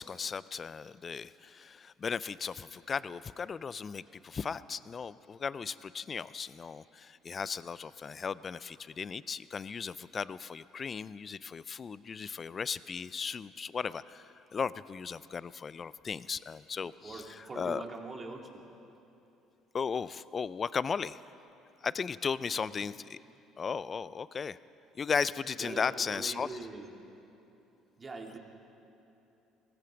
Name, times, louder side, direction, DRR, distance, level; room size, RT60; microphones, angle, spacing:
voice 1, 0.0-17.2 17.6-17.8 19.7-21.2 21.8-23.2 23.6-24.6 25.0-26.5, left 6 dB, 40° left, 17 dB, 0.4 m, -36 dB
voice 2, 16.8-18.6 22.5-22.9 25.6-26.9 28.0-28.4, right 3 dB, 30° right, 1 dB, 2.4 m, -43 dB
18.5 x 15.0 x 5.2 m, 2.9 s
supercardioid pair, 75°, 0 cm